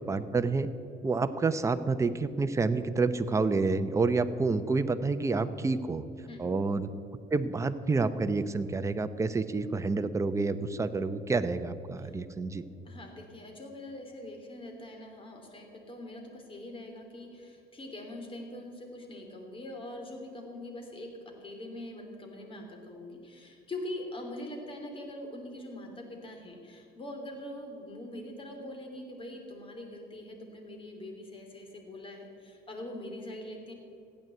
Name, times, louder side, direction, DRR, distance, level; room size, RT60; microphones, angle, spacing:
voice 1, 0.1-0.7 1.0-6.0 6.4-6.9 7.3-12.6, right 3 dB, 15° right, 10 dB, 0.7 m, -28 dB
voice 2, 12.8-21.1 21.4-33.7, left 1 dB, 30° left, 2 dB, 3.1 m, -43 dB
15.5 x 9.2 x 8.1 m, 2.6 s
cardioid pair, 110°, 17 cm